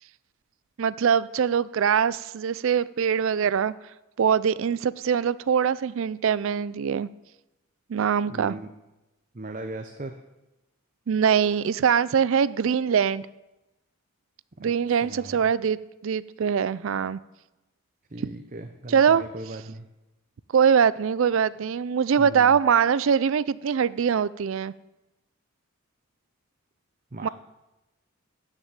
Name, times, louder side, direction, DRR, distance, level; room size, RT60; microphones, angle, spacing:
voice 1, 0.8-3.7 4.2-7.1 7.9-8.6 11.1-13.3 14.6-15.8 16.0-17.2 18.9-19.2 20.5-24.7 27.2-27.3, right 7 dB, 60° right, 18 dB, 0.4 m, -23 dB
voice 2, 8.3-8.7 9.3-10.2 14.6-15.4 18.1-19.9 22.2-22.6 27.1-27.3, right 2 dB, 35° right, 6 dB, 0.8 m, -38 dB
13.0 x 6.1 x 8.8 m, 1.0 s
head